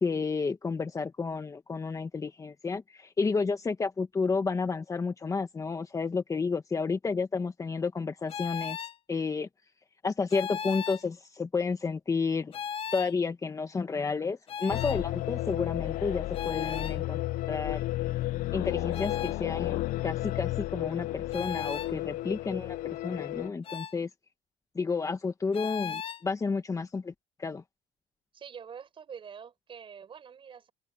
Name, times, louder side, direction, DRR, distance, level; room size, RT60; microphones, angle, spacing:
voice 1, 0.0-8.8 9.1-9.5 10.0-12.5 12.9-17.2 17.5-17.8 18.5-24.1 24.7-27.1 27.4-27.6, left 4 dB, 20° left, 1.5 m, -31 dB
sound 1, 8.3-9.0 10.3-11.0 12.5-13.1 14.5-15.0 16.3-17.0 18.9-19.4 21.3-21.9 23.6-24.0 25.5-26.2, left 8 dB, 40° left, 1.0 m, -36 dB
sound 2, 14.7-23.5, left 16 dB, 65° left, 0.6 m, -32 dB
voice 2, 28.3-30.7, right 7 dB, 35° right, 6.6 m, -46 dB
open air
cardioid pair, 120°, 15 cm